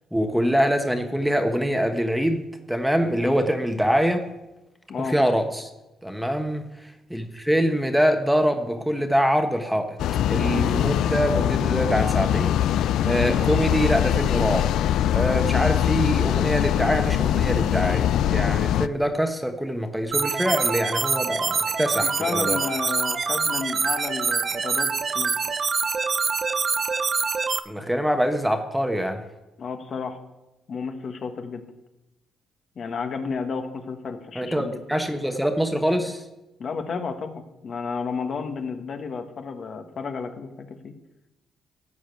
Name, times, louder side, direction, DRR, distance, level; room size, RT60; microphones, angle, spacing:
voice 1, 0.1-4.3 5.0-5.7 6.0-10.0 10.3-12.6 13.0-14.7 15.1-22.6 27.7-29.2 34.3-36.2, equal, 5° right, 6 dB, 1.3 m, -24 dB
sound 1, 10.0-18.9, left 11 dB, 80° left, 0.4 m, -22 dB
sound 2, 20.1-27.6, right 5 dB, 40° right, 0.7 m, -25 dB
voice 2, 22.2-25.3 29.6-30.2 30.7-31.6 32.7-34.8 36.6-40.9, left 5 dB, 55° left, 6 dB, 1.5 m, -32 dB
14.0 x 5.1 x 9.2 m, 1.0 s
cardioid pair, 90°, 0 cm